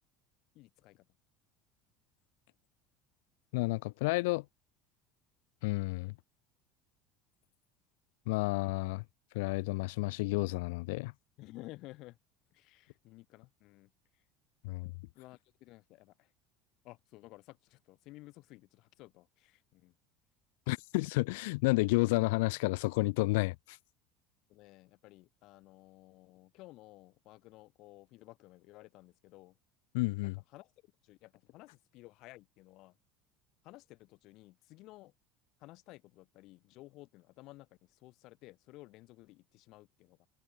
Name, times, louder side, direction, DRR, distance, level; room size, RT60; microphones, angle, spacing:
voice 1, 0.5-1.0 3.5-3.6 11.4-12.2 12.5-14.2 15.1-16.3 16.8-19.9 24.5-29.6 30.2-30.7 31.0-33.0 33.6-35.1 35.6-40.3, left 19 dB, 65° left, 5.5 m, -55 dB
voice 2, 3.5-4.4 5.6-6.1 8.3-9.0 9.3-11.1 14.6-14.9 20.7-23.8 29.9-30.4, left 24 dB, 80° left, 0.5 m, -31 dB
supercardioid pair, 100°, 0 cm